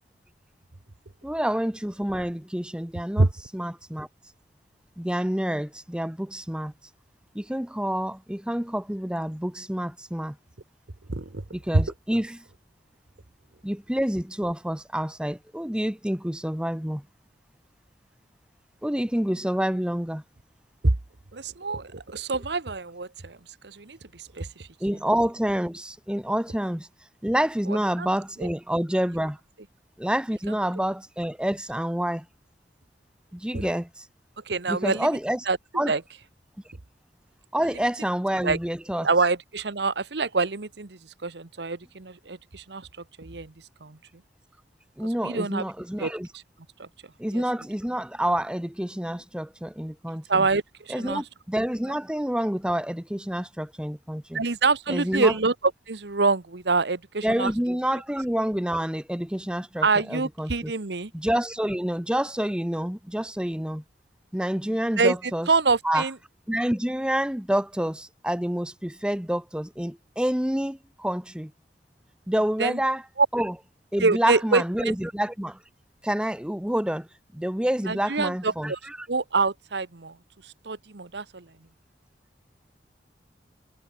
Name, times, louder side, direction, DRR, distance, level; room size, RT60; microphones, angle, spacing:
voice 1, 1.2-3.3 3.5-4.1 5.0-6.7 7.3-10.4 11.5-12.4 13.6-17.0 18.8-20.2 24.8-26.9 27.2-29.4 30.0-32.2 33.3-34.1 34.7-35.4 35.7-35.9 37.5-39.1 45.0-46.3 47.2-50.5 50.9-54.4 54.9-55.3 57.2-60.7 61.1-63.8 64.3-65.5 65.8-66.1 66.5-71.5 72.3-73.0 73.3-73.5 73.9-75.6 76.0-77.1 77.3-79.0, equal, 5° right, 0.9 m, -28 dB
voice 2, 11.1-11.4 11.7-11.8 20.8-20.9 21.3-23.4 23.6-24.7 27.7-28.1 33.5-33.8 34.5-35.1 35.5-35.6 35.8-36.0 38.4-38.6 39.0-42.9 43.2-43.5 43.8-44.0 45.2-45.6 46.0-46.1 46.8-46.9 47.3-47.4 50.3-51.2 54.3-55.5 55.9-57.5 59.8-61.1 65.0-65.2 65.5-66.1 72.6-72.8 73.2-73.3 74.0-74.9 77.9-78.8 79.1-80.2 80.6-81.5, right 3 dB, 80° right, 1.2 m, -25 dB
head